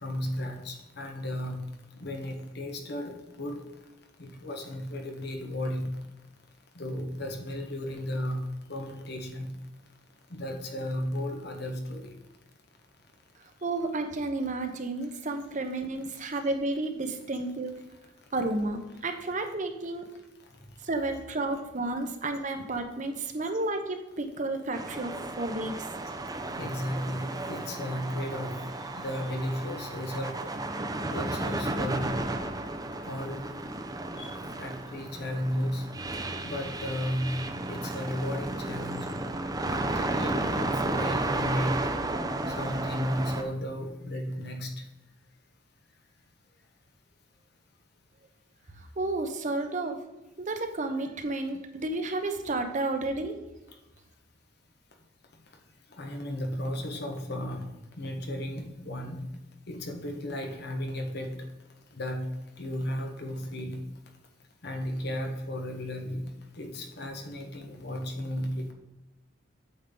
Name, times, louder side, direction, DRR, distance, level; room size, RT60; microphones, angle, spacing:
voice 1, 0.0-1.6 2.0-3.6 4.2-5.9 6.8-9.5 10.3-12.0 26.6-28.5 29.0-30.4 31.1-32.2 33.0-33.4 34.2-35.8 36.4-37.3 37.7-39.1 39.7-41.7 42.6-44.7 56.0-57.7 58.0-59.3 59.7-61.3 62.0-62.2 62.6-63.8 64.6-66.2 66.6-68.7, left 1 dB, 60° left, 3 dB, 1.3 m, -34 dB
voice 2, 13.6-17.8 18.3-20.1 20.8-25.7 48.8-50.0 50.4-53.4, right 2 dB, 40° right, 6 dB, 0.9 m, -31 dB
sound 1, 24.7-43.4, right 2 dB, 20° right, 0.6 m, -33 dB
8.6 x 7.2 x 3.8 m, 0.99 s
head